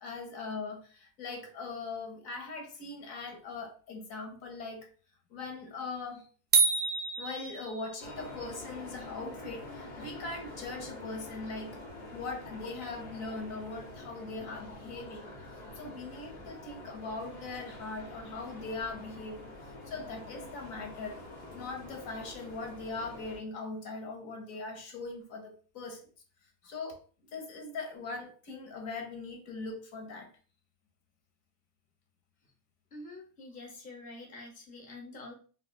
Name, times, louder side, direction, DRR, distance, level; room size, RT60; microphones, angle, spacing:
voice 1, 0.0-4.9 5.3-6.3 7.2-11.8 12.1-15.3 15.7-19.5 19.9-21.2 21.5-26.0 26.6-27.0 27.3-30.3, left 3 dB, 60° left, 4 dB, 1.1 m, -40 dB
sound 1, 6.5-8.1, right 4 dB, 25° right, 0.4 m, -27 dB
sound 2, 8.0-23.4, left 2 dB, 80° left, 1.3 m, -46 dB
voice 2, 32.9-35.3, left 2 dB, 20° left, 0 dB, 0.7 m, -46 dB
3.3 x 2.4 x 2.3 m, 0.39 s
supercardioid pair, 130°, 43 cm